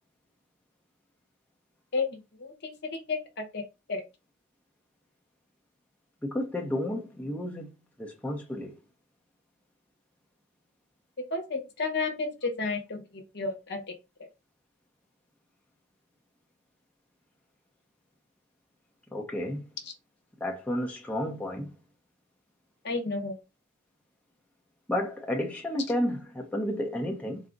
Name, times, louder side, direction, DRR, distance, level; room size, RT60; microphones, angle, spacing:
voice 1, 1.9-3.6 3.9-4.0 11.3-13.8 22.8-23.4, left 3 dB, 55° left, 0.9 m, -32 dB
voice 2, 6.2-7.7 8.0-8.7 19.1-19.7 20.4-21.7 24.9-27.4, left 1 dB, 5° left, 0.6 m, -31 dB
4.0 x 2.4 x 3.8 m
head